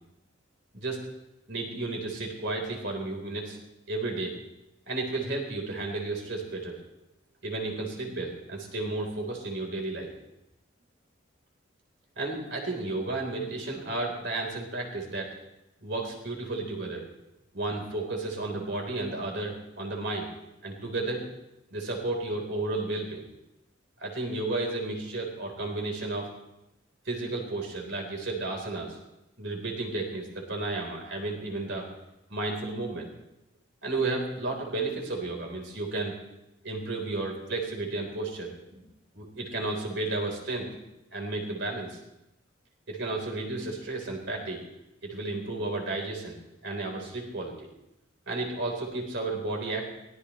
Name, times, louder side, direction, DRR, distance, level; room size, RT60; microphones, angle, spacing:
voice 1, 1.5-3.6 3.9-4.3 4.9-6.8 7.4-10.1 12.2-15.3 15.8-17.0 17.5-20.3 20.6-21.2 21.7-23.3 24.0-26.3 27.1-29.0 29.4-31.9 32.3-33.1 33.8-36.1 36.6-38.8 39.1-40.7 41.1-42.0 42.9-44.6 45.0-46.4 46.6-47.7 48.3-49.9, right 2 dB, 60° right, 1 dB, 4.1 m, -32 dB
23.5 x 18.5 x 3.3 m, 0.89 s
head